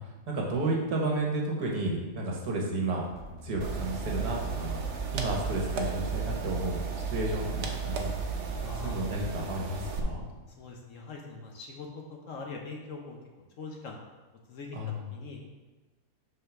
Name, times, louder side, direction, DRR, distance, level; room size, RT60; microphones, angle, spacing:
voice 1, 0.0-3.0 3.4-4.8 5.1-8.2 8.8-10.2 14.7-15.0, right 2 dB, 75° right, -1 dB, 1.8 m, -32 dB
sound 1, 2.9-9.9, equal, 75° left, 1.5 m, -44 dB
sound 2, 3.6-10.0, right 6 dB, 55° right, 0.9 m, -34 dB
voice 2, 8.6-9.0 10.6-13.2 13.6-14.0 14.5-15.4, left 4 dB, 60° left, 1 dB, 1.0 m, -42 dB
5.5 x 3.9 x 5.8 m, 1.2 s
omnidirectional pair, 1.8 m